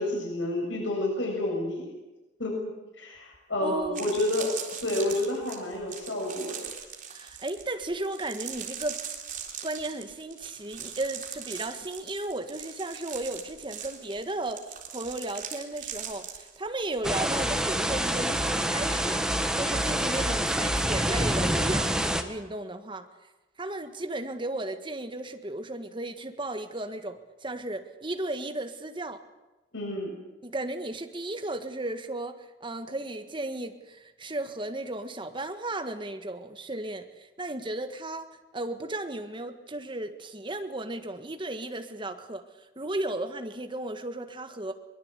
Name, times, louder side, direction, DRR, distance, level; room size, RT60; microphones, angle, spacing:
voice 1, 0.0-1.9 2.4-4.5 4.8-6.7 29.7-30.2, left 1 dB, 85° left, -1 dB, 7.1 m, -30 dB
sound 1, 3.3-3.4 3.8-17.3 17.6-17.9, right 8 dB, 45° right, 3.6 m, -40 dB
voice 2, 3.6-4.2 7.1-9.0 9.6-23.1 23.6-29.2 30.4-44.7, right 2 dB, 25° right, 6 dB, 1.7 m, -35 dB
sound 2, 17.0-22.2, right 1 dB, 5° right, 1.4 m, -27 dB
22.5 x 21.5 x 8.3 m, 1.1 s
head